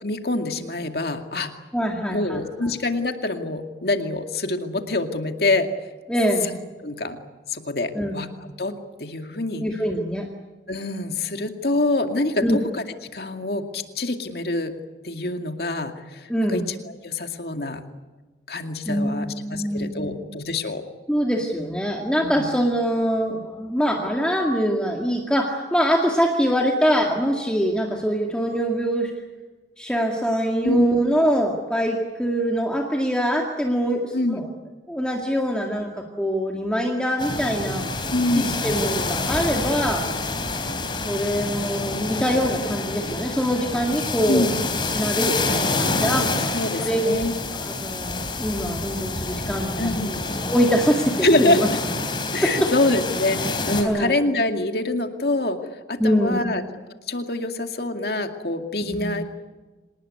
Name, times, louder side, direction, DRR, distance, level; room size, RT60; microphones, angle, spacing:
voice 1, 0.0-1.5 2.0-5.7 6.4-6.6 6.8-7.2 7.5-9.7 10.7-14.7 15.0-17.8 18.5-20.8 22.2-22.5 30.6-30.9 34.1-34.5 38.1-38.6 44.3-44.6 46.5-47.3 49.8-50.3 51.2-51.8 52.3-55.6 55.9-56.6 57.1-59.2, left 2 dB, 55° left, 5 dB, 2.2 m, -25 dB
voice 2, 1.7-2.7 6.1-6.5 7.9-8.1 9.6-10.3 12.4-12.6 16.3-16.6 18.9-20.3 21.1-29.1 29.8-34.4 34.9-37.8 38.3-40.1 40.9-44.7 44.9-46.3 46.8-47.0 47.6-50.2 50.5-51.7 52.4-52.7 53.8-54.1 56.0-56.4 58.9-59.2, equal, 5° left, 0 dB, 2.1 m, -24 dB
sound 1, 37.2-53.8, left 3 dB, 25° left, 3.7 m, -27 dB
26.5 x 19.5 x 9.6 m, 1.3 s
head